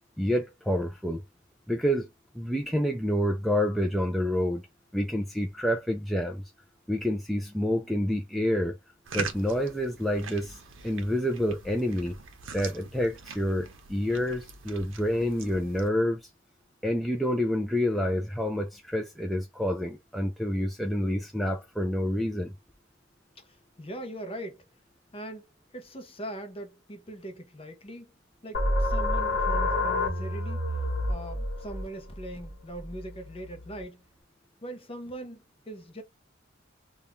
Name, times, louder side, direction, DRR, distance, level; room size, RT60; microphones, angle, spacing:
voice 1, 0.2-1.2 1.7-2.1 2.3-4.6 4.9-6.4 6.9-8.8 9.1-12.2 12.5-16.2 16.8-22.5, equal, ahead, 0.3 m, -28 dB
sound 1, 9.0-15.9, right 5 dB, 70° right, 0.7 m, -42 dB
voice 2, 23.8-24.6 25.1-25.5 25.7-28.1 28.4-30.7 31.1-34.0 34.6-36.0, right 1 dB, 30° left, 0.7 m, -41 dB
sound 2, 28.5-33.8, left 1 dB, 55° left, 1.0 m, -29 dB
2.6 x 2.3 x 3.5 m
head